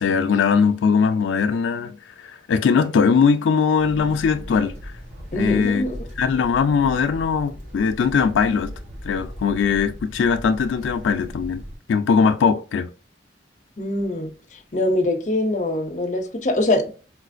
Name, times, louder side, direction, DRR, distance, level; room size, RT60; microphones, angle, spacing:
voice 1, 0.0-4.9 5.3-5.8 6.2-8.7 9.0-11.6 11.9-12.9, left 6 dB, 85° left, 0.3 m, -20 dB
sound 1, 3.8-11.8, equal, 80° right, 1.5 m, -38 dB
voice 2, 5.3-6.0 13.8-16.9, left 1 dB, 40° left, 0.5 m, -23 dB
3.9 x 2.4 x 2.4 m
head